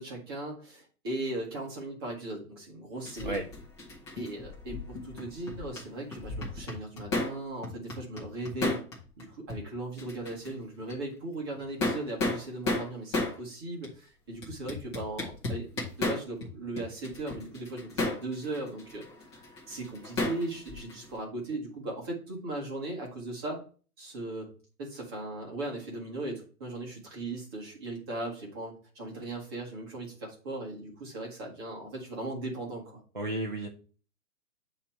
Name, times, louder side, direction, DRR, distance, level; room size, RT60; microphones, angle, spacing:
voice 1, 0.0-3.4 4.1-8.8 9.2-23.6 24.0-24.5 24.8-33.0, right 2 dB, 15° right, -2 dB, 1.1 m, -38 dB
sound 1, 3.0-5.8 6.1-7.4 7.6-9.2 9.5-9.6 10.0-10.5 10.9-11.0 11.6-13.4 13.8-13.9 14.4-16.5 16.8-21.1, left 2 dB, 15° left, 1.1 m, -33 dB
voice 2, 33.1-33.7, right 2 dB, 35° right, -1 dB, 0.4 m, -32 dB
8.4 x 2.9 x 4.4 m, 0.40 s
hypercardioid pair, 170°, 47 cm